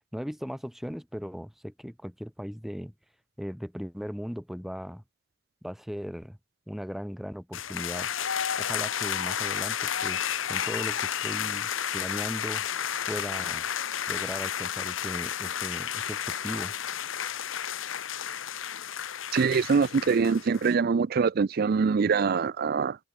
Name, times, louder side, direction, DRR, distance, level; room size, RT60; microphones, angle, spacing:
voice 1, 0.1-2.9 3.4-5.0 5.6-6.4 6.7-8.1 8.6-12.7 13.1-13.7 14.1-16.7, equal, ahead, 3.5 m, -38 dB
sound 1, 7.5-20.7, left 9 dB, 80° left, 0.9 m, -32 dB
voice 2, 19.3-23.0, right 5 dB, 50° right, 0.4 m, -24 dB
head